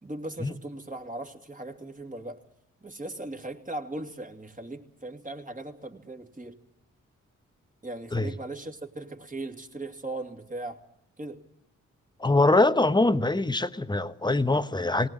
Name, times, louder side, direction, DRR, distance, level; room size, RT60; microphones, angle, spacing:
voice 1, 0.0-2.4 2.8-6.6 7.8-10.8 11.2-11.4, right 2 dB, 25° right, 3 dB, 2.6 m, -38 dB
voice 2, 12.2-15.1, left 2 dB, 15° left, 12 dB, 1.1 m, -23 dB
19.5 x 17.5 x 9.0 m, 0.78 s
supercardioid pair, 45°, 32 cm